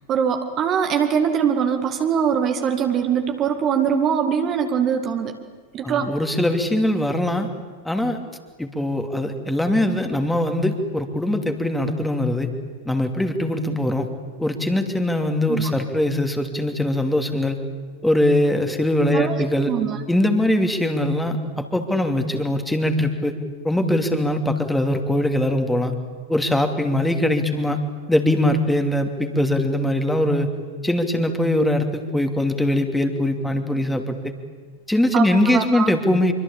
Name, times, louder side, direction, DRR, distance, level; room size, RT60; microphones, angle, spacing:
voice 1, 0.1-5.4 5.7-6.1 15.5-15.7 19.1-20.0 35.1-35.9, right 7 dB, 30° right, 5 dB, 2.1 m, -22 dB
voice 2, 5.8-7.5 7.8-8.2 8.6-12.5 12.8-14.1 14.4-17.6 18.0-19.7 20.1-23.3 23.6-25.9 26.3-27.8 28.1-30.5 30.8-34.1 34.9-36.3, left 1 dB, 5° left, 5 dB, 2.8 m, -21 dB
25.5 x 24.5 x 8.7 m, 1.4 s
figure-of-eight pair, 90°, 0 cm